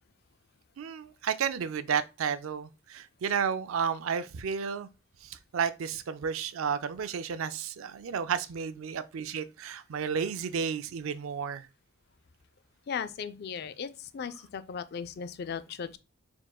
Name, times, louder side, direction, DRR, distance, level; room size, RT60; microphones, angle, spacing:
voice 1, 0.8-4.9 5.2-11.7, right 7 dB, 75° right, 0.4 m, -32 dB
voice 2, 12.9-16.0, left 6 dB, 50° left, 0.3 m, -37 dB
4.6 x 3.6 x 2.3 m
head